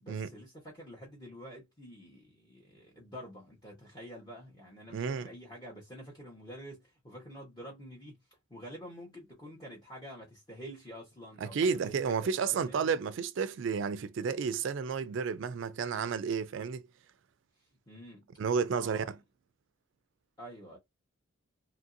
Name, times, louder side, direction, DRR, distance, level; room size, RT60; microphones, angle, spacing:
voice 1, 0.0-8.2 8.5-12.9 17.9-18.3 18.7-19.2 20.4-20.8, equal, 20° left, 0.9 m, -48 dB
voice 2, 4.9-5.3 11.4-16.8 18.4-19.2, right 6 dB, 60° right, 0.3 m, -31 dB
2.8 x 2.6 x 2.5 m
head